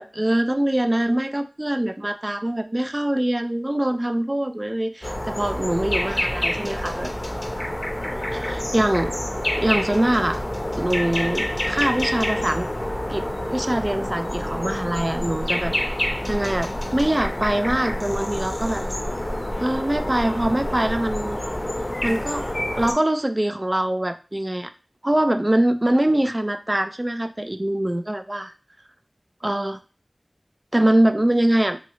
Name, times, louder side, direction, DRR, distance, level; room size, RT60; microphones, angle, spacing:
voice 1, 0.0-7.1 8.3-9.1 9.6-10.4 10.8-12.7 13.1-15.7 16.3-18.8 19.6-21.4 22.0-22.5 22.7-24.7 25.0-28.5 29.4-29.8 30.7-31.8, right 1 dB, 30° right, 9 dB, 0.3 m, -23 dB
sound 1, 5.0-22.9, left 1 dB, 35° left, 0.6 m, -27 dB
3.0 x 2.0 x 3.6 m, 0.35 s
wide cardioid pair, 40°, 0 cm